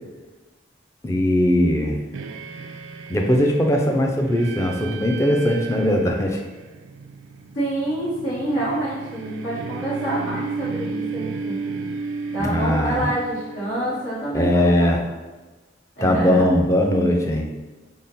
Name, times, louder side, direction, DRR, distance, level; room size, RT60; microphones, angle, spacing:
voice 1, 1.0-2.0 3.1-6.4 12.4-13.1 14.3-15.0 16.0-17.5, left 1 dB, 15° left, 1 dB, 0.4 m, -20 dB
sound 1, 2.1-14.2, right 4 dB, 85° right, 0.3 m, -34 dB
voice 2, 7.5-11.7 12.3-14.7 15.0-15.1 16.0-16.5, right 1 dB, 75° left, -10 dB, 1.3 m, -27 dB
3.7 x 2.1 x 4.0 m, 1.2 s
head